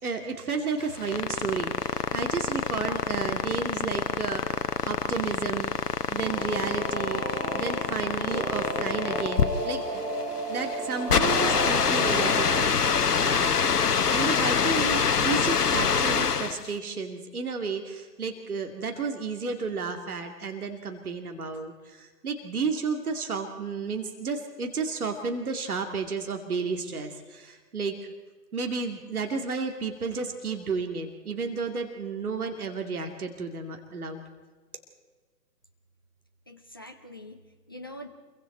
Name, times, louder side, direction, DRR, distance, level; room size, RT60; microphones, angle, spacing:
voice 1, 0.0-5.7 6.1-7.2 7.5-10.1 10.5-13.5 14.1-28.1 28.5-34.2, right 4 dB, 60° right, 4 dB, 2.5 m, -32 dB
sound 1, 0.8-16.7, left 6 dB, 65° left, 1.0 m, -26 dB
Singing / Musical instrument, 6.2-12.5, right 2 dB, 85° right, 3.3 m, -33 dB
voice 2, 36.5-38.1, left 1 dB, 15° left, 5 dB, 0.6 m, -44 dB
27.5 x 23.0 x 4.4 m, 1.4 s
figure-of-eight pair, 135°, 50 cm